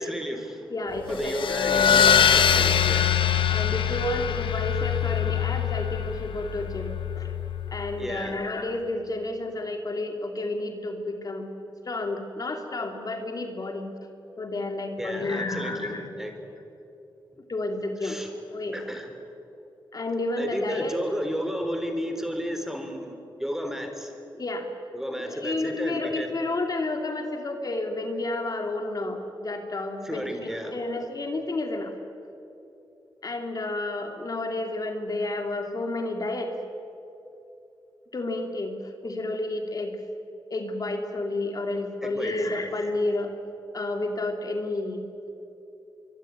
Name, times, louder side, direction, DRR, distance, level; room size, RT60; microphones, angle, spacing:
voice 1, 0.0-0.7 1.1-3.1 8.0-8.4 15.0-16.3 18.0-18.3 18.7-19.1 20.4-24.1 24.9-26.4 30.0-30.8 42.0-42.7, equal, 5° right, 6 dB, 4.0 m, -33 dB
voice 2, 0.7-1.5 3.5-7.3 7.7-11.5 11.9-13.9 14.4-16.4 17.5-18.2 18.5-18.8 19.9-21.0 24.3-24.7 25.2-31.9 33.2-36.5 38.1-40.0 40.5-43.3 43.7-45.0, left 2 dB, 45° left, 4 dB, 2.8 m, -31 dB
sound 1, 1.1-8.1, left 8 dB, 75° left, 1.5 m, -23 dB
25.0 x 24.0 x 9.5 m, 2.9 s
cardioid pair, 90°, 9 cm